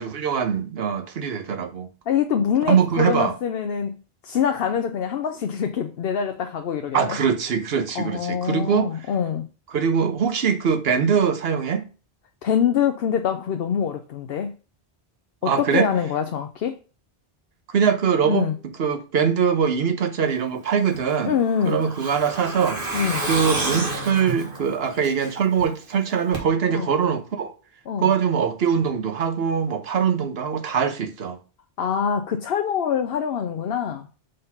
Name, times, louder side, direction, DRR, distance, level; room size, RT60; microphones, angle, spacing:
voice 1, 0.0-1.9 2.7-3.3 6.9-8.9 9.7-11.8 15.4-15.9 17.7-18.5 18.8-21.4 21.6-22.8 23.3-27.5 28.0-31.4, right 7 dB, 75° right, 1.1 m, -22 dB
voice 2, 2.1-4.0 4.2-7.2 7.9-9.5 12.4-14.5 15.4-16.8 18.3-18.6 21.3-21.9 22.9-23.3 26.7-26.9 27.9-28.1 31.8-34.1, left 8 dB, 70° left, 0.9 m, -24 dB
Truck, 20.9-25.6 25.9-26.0 26.3-26.4, right 2 dB, 60° right, 1.9 m, -29 dB
5.1 x 4.1 x 5.7 m
omnidirectional pair, 1.0 m